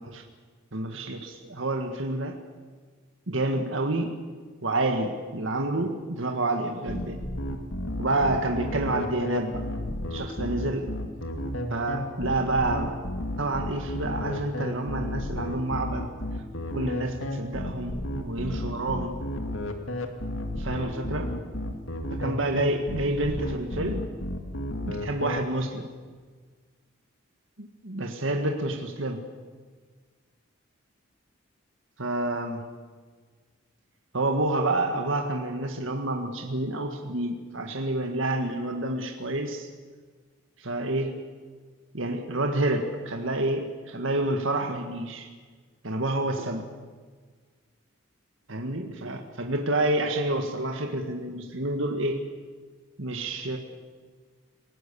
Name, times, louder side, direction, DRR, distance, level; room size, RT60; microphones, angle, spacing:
voice 1, 0.7-2.4 3.3-4.2 4.6-7.2 8.0-9.6 10.1-10.9 11.7-13.0 13.4-16.1 16.7-19.2 20.6-21.3 22.2-24.0 24.8-25.9 27.6-29.2 32.0-32.7 34.1-39.7 40.6-41.2 41.9-45.3 45.8-46.7 48.5-52.3 53.0-53.6, right 2 dB, 70° right, 4 dB, 1.8 m, -28 dB
sound 1, 6.9-25.4, left 1 dB, 75° left, 2.3 m, -32 dB
29.0 x 18.0 x 7.1 m, 1.5 s
head